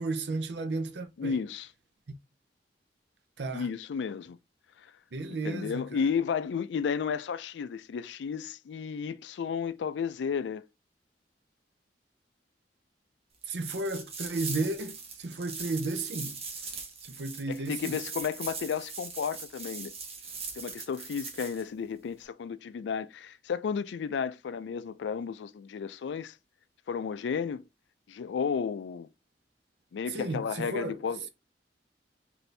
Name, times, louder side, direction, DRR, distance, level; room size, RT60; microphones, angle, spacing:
voice 1, 0.0-1.4 2.1-2.2 3.4-3.7 5.1-6.0 13.5-16.4 17.0-18.0 30.1-31.0, right 2 dB, 70° right, 0.6 m, -33 dB
voice 2, 1.2-1.7 3.5-4.4 5.3-10.6 17.5-19.9 20.6-26.3 26.9-27.6 28.1-29.1 29.9-31.3, left 6 dB, 80° left, 0.3 m, -33 dB
sound 1, 13.5-21.6, right 4 dB, 35° right, 0.9 m, -41 dB
4.1 x 2.6 x 3.2 m
head